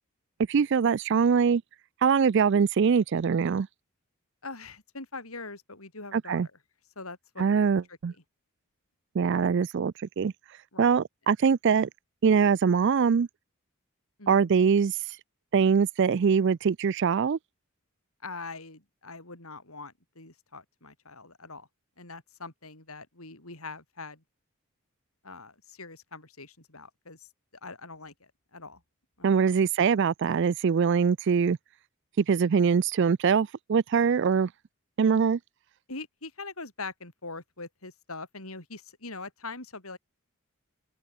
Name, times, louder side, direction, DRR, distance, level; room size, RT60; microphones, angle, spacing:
voice 1, 0.5-1.6 2.0-3.7 6.1-6.5 7.4-8.1 9.2-10.3 10.8-11.9 12.2-13.3 14.3-15.2 15.5-17.4 29.2-31.6 32.2-34.5 35.0-35.4, right 6 dB, 55° right, 0.4 m, -23 dB
voice 2, 4.4-6.5 7.0-7.6 7.9-8.0 9.2-9.5 10.7-10.9 14.2-14.5 18.2-21.7 22.0-24.2 25.2-27.3 27.6-28.8 29.2-29.6 35.9-40.0, left 3 dB, 75° left, 7.3 m, -43 dB
open air
head